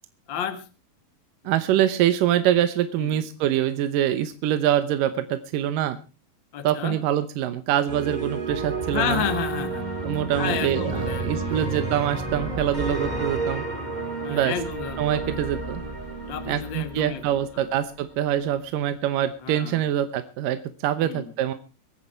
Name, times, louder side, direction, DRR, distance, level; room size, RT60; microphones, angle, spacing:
voice 1, 0.3-0.6 3.0-3.2 6.5-7.0 8.9-9.8 10.4-11.8 14.2-15.5 16.3-17.2 17.5-17.7 19.4-19.8 21.0-21.3, left 8 dB, 45° left, 9 dB, 1.6 m, -31 dB
voice 2, 1.5-6.0 6.6-9.2 10.0-13.6 14.3-14.6 15.0-15.8 16.5-21.5, right 11 dB, 70° right, 11 dB, 2.4 m, -24 dB
sound 1, 7.9-17.9, right 3 dB, 15° right, 2.3 m, -31 dB
22.5 x 9.8 x 4.4 m, 0.35 s
omnidirectional pair, 4.2 m